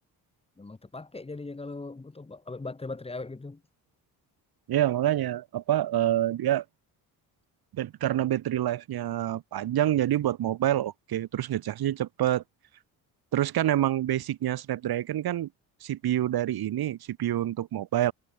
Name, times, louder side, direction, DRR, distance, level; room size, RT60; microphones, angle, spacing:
voice 1, 0.6-3.6, left 3 dB, 15° left, 3.4 m, -39 dB
voice 2, 4.7-6.6 7.7-12.4 13.3-15.5 15.8-18.1, right 12 dB, 65° right, 2.9 m, -27 dB
cardioid pair, 160°, 39 cm